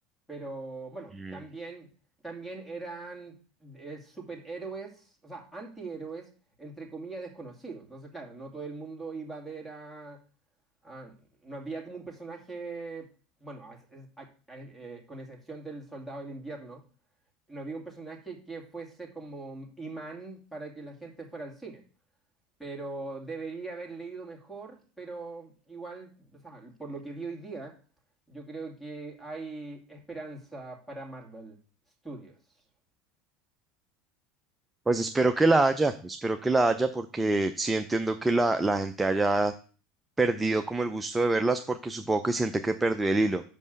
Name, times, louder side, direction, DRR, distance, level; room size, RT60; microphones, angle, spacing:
voice 1, 0.3-1.9 2.2-6.3 6.6-10.2 10.8-11.1 11.4-13.1 13.4-16.8 17.5-21.8 22.6-27.8 28.3-31.6 32.0-32.4, right 3 dB, 5° left, 4 dB, 2.3 m, -41 dB
voice 2, 34.9-39.5 40.2-43.4, right 2 dB, 10° right, 6 dB, 0.6 m, -25 dB
5.5 x 5.4 x 6.6 m, 0.40 s
supercardioid pair, 105°, 0 cm